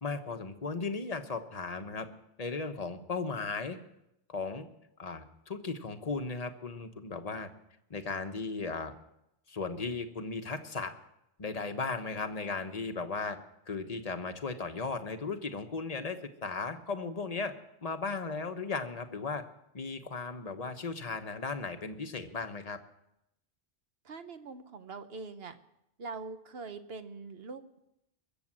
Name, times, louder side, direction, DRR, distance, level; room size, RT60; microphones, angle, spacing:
voice 1, 0.0-2.1 2.4-3.8 4.3-4.7 5.0-7.5 7.9-8.9 9.5-10.9 11.4-13.4 13.7-17.5 17.8-19.4 19.7-22.8, left 4 dB, 40° left, 7 dB, 1.2 m, -36 dB
voice 2, 24.0-25.6 26.0-27.8, right 4 dB, 70° right, 9 dB, 1.2 m, -43 dB
22.0 x 7.5 x 7.5 m, 0.83 s
omnidirectional pair, 1.0 m